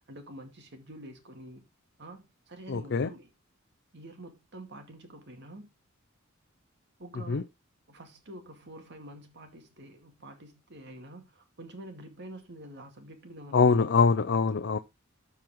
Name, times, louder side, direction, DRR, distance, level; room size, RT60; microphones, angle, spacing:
voice 1, 0.1-1.6 2.0-3.3 3.9-5.7 7.0-7.5 7.9-13.8, right 1 dB, 55° right, 2.1 m, -47 dB
voice 2, 2.7-3.1 7.3-7.4 13.5-14.8, left 5 dB, 55° left, 0.5 m, -23 dB
13.0 x 4.6 x 3.6 m
head